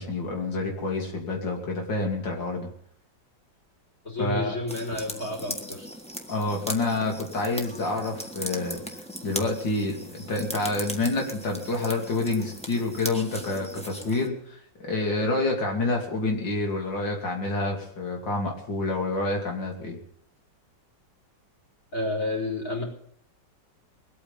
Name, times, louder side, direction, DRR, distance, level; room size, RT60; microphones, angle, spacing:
voice 1, 0.0-2.7 4.2-4.6 6.3-8.8 9.2-20.0, left 2 dB, 80° left, 0 dB, 3.5 m, -28 dB
voice 2, 4.0-5.9 21.9-22.8, left 1 dB, 45° left, -2 dB, 5.0 m, -30 dB
sound 1, 4.7-14.3, equal, 5° left, 1.2 m, -38 dB
22.0 x 8.9 x 5.7 m, 0.64 s
omnidirectional pair, 2.0 m